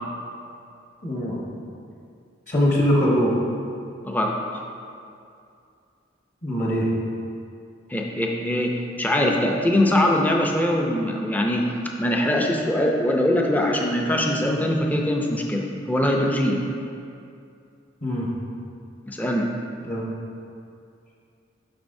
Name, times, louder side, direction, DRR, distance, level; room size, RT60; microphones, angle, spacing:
voice 1, 1.0-1.4 2.5-3.3 6.4-6.9 18.0-18.3 19.8-20.0, equal, 40° left, -4 dB, 1.1 m, -22 dB
voice 2, 4.0-4.4 7.9-16.6 19.1-19.5, left 1 dB, 10° left, 0 dB, 0.5 m, -22 dB
10.0 x 5.9 x 2.6 m, 2.5 s
head